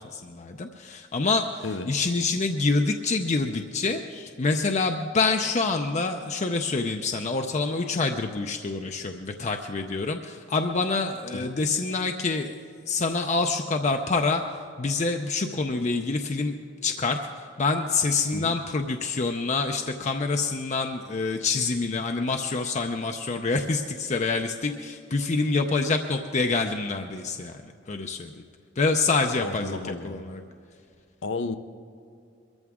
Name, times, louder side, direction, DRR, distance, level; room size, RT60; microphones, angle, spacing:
voice 1, 0.1-12.6 12.9-14.4 14.8-16.5 16.8-17.2 17.6-27.5 27.9-28.3 28.8-30.4, left 3 dB, 40° left, 4 dB, 0.6 m, -26 dB
voice 2, 1.6-1.9 11.3-11.5 18.3-18.5 29.4-30.2 31.2-31.6, left 3 dB, 75° left, 11 dB, 0.8 m, -33 dB
22.0 x 14.0 x 3.7 m, 2.4 s
head